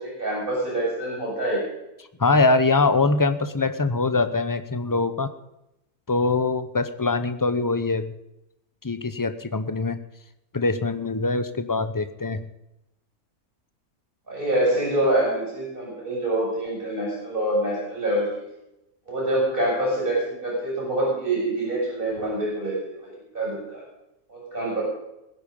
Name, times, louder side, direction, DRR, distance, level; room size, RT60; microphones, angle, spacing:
voice 1, 0.0-1.6 14.3-18.3 19.1-23.8 24.3-24.8, right 1 dB, 35° right, -4 dB, 7.1 m, -26 dB
voice 2, 2.2-5.3 6.1-8.1 8.8-10.0 10.5-12.4, left 3 dB, 20° left, 10 dB, 0.5 m, -23 dB
21.5 x 10.0 x 5.3 m, 0.89 s
omnidirectional pair, 1.5 m